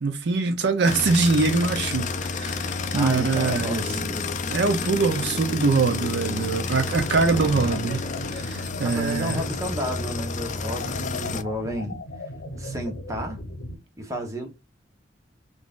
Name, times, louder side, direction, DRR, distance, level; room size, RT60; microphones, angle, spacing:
voice 1, 0.0-3.9 4.5-9.4, right 4 dB, 65° right, 0.6 m, -23 dB
sound 1, 0.9-11.4, left 4 dB, 45° left, 0.4 m, -30 dB
voice 2, 2.9-4.4 7.2-7.8 8.8-12.0 12.6-13.4 14.0-14.5, equal, 20° right, 0.9 m, -32 dB
sound 2, 6.9-13.8, left 1 dB, 85° left, 0.9 m, -37 dB
3.7 x 2.5 x 2.4 m
head